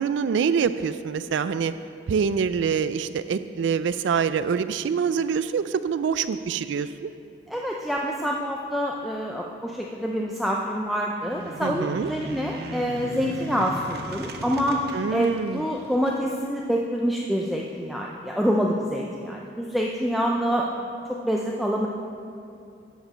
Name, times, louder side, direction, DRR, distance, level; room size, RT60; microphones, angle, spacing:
voice 1, 0.0-1.7 2.1-7.1 11.6-12.1 14.9-15.6, right 6 dB, 75° right, 13 dB, 0.3 m, -25 dB
voice 2, 7.5-14.8 15.1-21.9, equal, ahead, -2 dB, 0.4 m, -26 dB
sound 1, 11.2-16.2, right 1 dB, 55° right, 0.8 m, -38 dB
11.5 x 5.2 x 7.4 m, 2.6 s
head